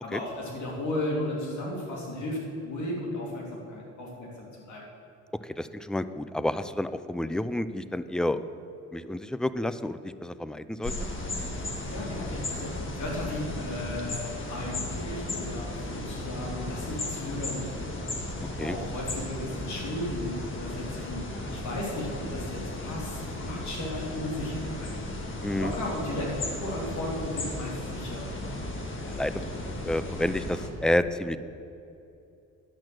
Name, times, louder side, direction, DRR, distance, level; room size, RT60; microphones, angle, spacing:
voice 1, 0.0-4.8 11.9-17.9 18.6-21.2 21.5-24.9 25.5-26.3 26.6-28.3, left 1 dB, 70° left, -2 dB, 2.8 m, -35 dB
voice 2, 5.4-8.4 8.9-11.1 18.4-18.8 25.4-25.7 29.0-29.4 29.8-31.4, left 1 dB, ahead, 13 dB, 0.4 m, -30 dB
sound 1, 10.8-30.7, left 1 dB, 40° left, 1.7 m, -35 dB
11.0 x 6.0 x 7.7 m, 2.6 s
cardioid pair, 90°, 30 cm